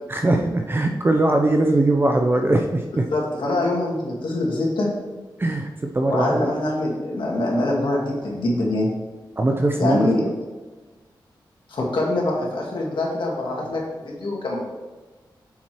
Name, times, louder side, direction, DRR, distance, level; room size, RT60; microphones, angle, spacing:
voice 1, 0.1-3.1 5.4-6.5 9.4-10.3, right 2 dB, 25° right, 3 dB, 0.6 m, -21 dB
voice 2, 3.1-4.9 6.1-8.9 9.8-10.3 11.7-14.7, left 2 dB, 80° left, -3 dB, 1.9 m, -24 dB
7.1 x 4.5 x 4.5 m, 1.2 s
wide cardioid pair, 90°, 8 cm